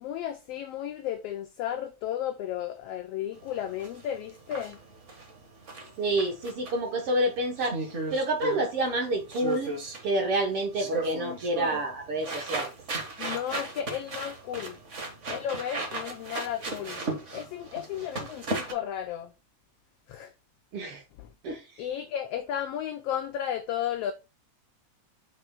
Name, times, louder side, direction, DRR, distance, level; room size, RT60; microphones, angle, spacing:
voice 1, 0.0-4.8 13.2-14.8 15.3-17.0 17.3-19.3 20.1-20.3 21.2-21.3 21.8-24.1, left 10 dB, 80° left, 1.4 m, -34 dB
sound 1, 3.4-18.7, right 3 dB, 40° right, 1.1 m, -36 dB
voice 2, 6.0-7.8 8.1-9.7 10.0-12.7 20.7-21.0 21.4-21.8, right 1 dB, 60° right, 1.7 m, -28 dB
6.4 x 3.2 x 5.9 m
omnidirectional pair, 3.4 m